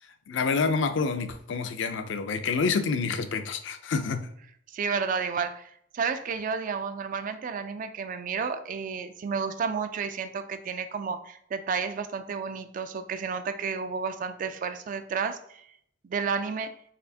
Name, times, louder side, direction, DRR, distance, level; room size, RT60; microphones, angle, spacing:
voice 1, 0.3-4.3, left 4 dB, 65° left, 9 dB, 0.4 m, -28 dB
voice 2, 4.7-15.6 16.0-16.7, right 5 dB, 45° right, 10 dB, 0.3 m, -31 dB
4.1 x 3.3 x 2.7 m, 0.67 s
head